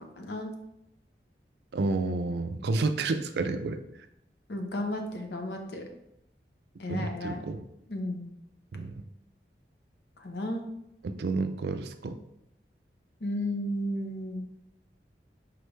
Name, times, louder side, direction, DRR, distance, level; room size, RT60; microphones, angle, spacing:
voice 1, 0.2-0.5 4.5-5.8 6.8-7.4 7.9-8.3 10.2-10.6 13.2-14.4, left 1 dB, 70° left, 4 dB, 0.7 m, -33 dB
voice 2, 1.7-3.8 6.9-7.6 8.7-9.0 11.0-12.2, right 3 dB, 70° right, 9 dB, 0.4 m, -30 dB
4.9 x 3.3 x 3.1 m, 0.82 s
head